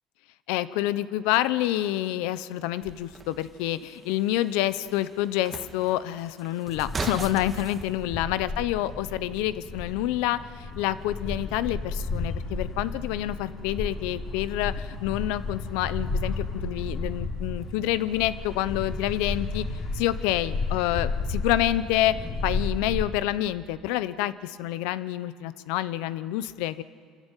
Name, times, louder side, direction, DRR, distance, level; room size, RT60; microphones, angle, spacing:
voice 1, 0.5-19.6 19.9-26.8, left 14 dB, 85° left, 15 dB, 0.8 m, -28 dB
sound 1, 2.8-7.8, right 4 dB, 25° right, 1.6 m, -39 dB
sound 2, 6.7-23.1, left 3 dB, 45° left, 4.3 m, -33 dB
26.0 x 13.5 x 9.2 m, 2.1 s
cardioid pair, 115°, 0 cm